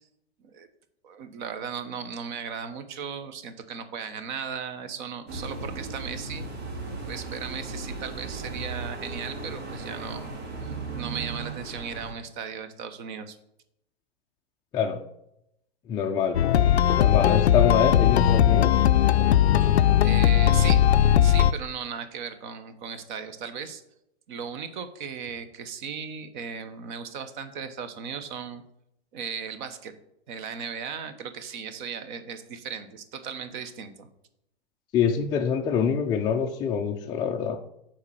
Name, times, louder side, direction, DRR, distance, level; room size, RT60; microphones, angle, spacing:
voice 1, 1.0-6.4 7.1-10.3 10.6-13.4 19.6-19.7 20.0-20.8 21.2-23.8 24.3-28.6 29.1-29.9 30.3-34.1, right 6 dB, 45° right, 10 dB, 1.0 m, -36 dB
sound 1, 5.3-12.1, right 3 dB, 70° right, 3.0 m, -36 dB
voice 2, 15.9-16.4 17.0-18.8 34.9-37.6, left 7 dB, 15° left, 0 dB, 0.4 m, -25 dB
sound 2, 16.3-21.5, left 11 dB, 80° left, 0.5 m, -19 dB
7.1 x 4.4 x 6.4 m, 0.79 s
hypercardioid pair, 115°, 32 cm